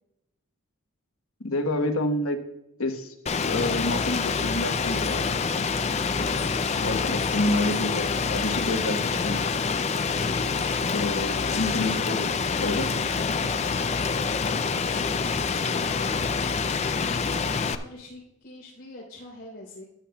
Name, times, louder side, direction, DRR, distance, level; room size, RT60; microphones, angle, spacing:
voice 1, 1.4-2.4 2.8-5.3 6.2-6.5 6.8-9.4 10.9-12.3 12.6-13.0, left 2 dB, 75° left, 6 dB, 1.1 m, -29 dB
Rain, 3.3-17.8, left 5 dB, 30° left, 0.4 m, -26 dB
voice 2, 17.7-19.8, left 1 dB, 50° left, -6 dB, 3.5 m, -46 dB
14.0 x 10.0 x 2.3 m, 0.84 s
head